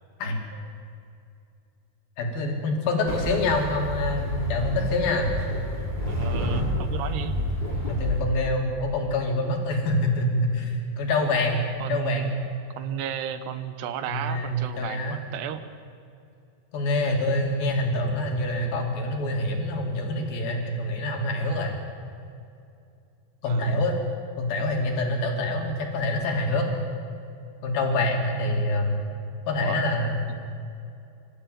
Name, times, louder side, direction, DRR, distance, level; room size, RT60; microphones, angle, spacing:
voice 1, 2.2-5.3 7.9-11.6 11.9-12.4 14.1-15.2 16.7-21.8 23.4-24.0 24.4-26.7 27.6-29.0 29.5-30.2, left 2 dB, 60° left, 2 dB, 4.3 m, -26 dB
sound 1, 3.0-8.2, equal, 10° left, 5.5 m, -29 dB
voice 2, 6.1-7.4 11.8-12.3 12.8-15.6 23.5-23.8 29.6-29.8, right 10 dB, 80° right, 11 dB, 3.1 m, -33 dB
25.5 x 14.0 x 9.3 m, 2.6 s
omnidirectional pair, 4.9 m